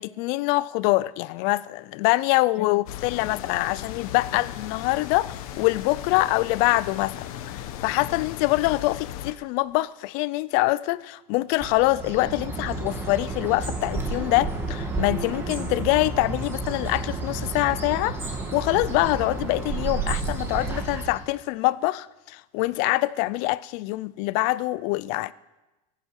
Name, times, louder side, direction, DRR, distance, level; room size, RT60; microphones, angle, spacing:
voice 1, 0.0-25.3, left 20 dB, 45° left, 0.5 m, -25 dB
sound 1, 2.9-9.3, left 11 dB, 75° left, 1.2 m, -37 dB
Bird, 11.6-21.3, right 3 dB, 15° right, 2.1 m, -31 dB
22.5 x 9.1 x 6.4 m
cardioid pair, 170°, 18 cm